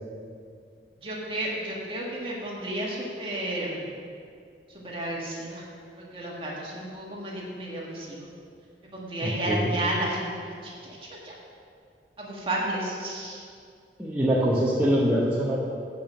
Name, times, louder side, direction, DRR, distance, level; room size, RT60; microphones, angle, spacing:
voice 1, 1.0-3.9 4.7-5.6 6.0-8.3 8.9-11.3 12.2-13.4, right 1 dB, 30° right, -4 dB, 1.8 m, -32 dB
voice 2, 9.2-9.7 14.0-15.6, equal, 10° right, -8 dB, 0.9 m, -24 dB
8.5 x 5.3 x 7.5 m, 2.3 s
head